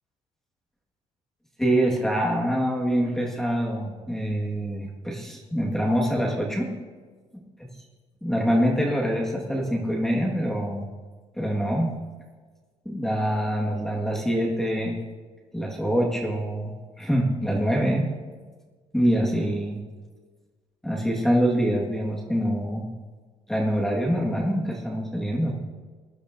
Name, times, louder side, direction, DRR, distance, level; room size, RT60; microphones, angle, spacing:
voice 1, 1.6-6.7 8.2-10.9 11.4-11.9 12.8-15.0 15.5-18.1 18.9-19.8 20.8-22.9 23.5-25.6, equal, 5° left, -2 dB, 1.6 m, -25 dB
19.5 x 11.5 x 2.6 m, 1.4 s
cardioid pair, 155°, 12 cm